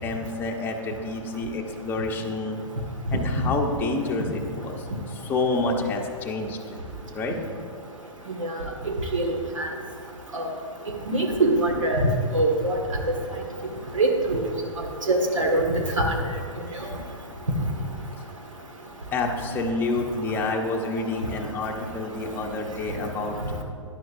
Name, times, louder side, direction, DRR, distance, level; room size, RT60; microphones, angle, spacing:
voice 1, 0.0-2.6 3.1-6.8 7.1-7.4 19.1-23.6, left 3 dB, 10° left, 0 dB, 0.9 m, -28 dB
voice 2, 8.8-9.7 10.3-10.5 11.1-12.1 12.3-12.8 13.9-14.4 15.1-15.6 16.0-16.1, right 2 dB, 75° right, 2 dB, 1.8 m, -23 dB
13.5 x 10.5 x 2.6 m, 2.4 s
figure-of-eight pair, 120°, 17 cm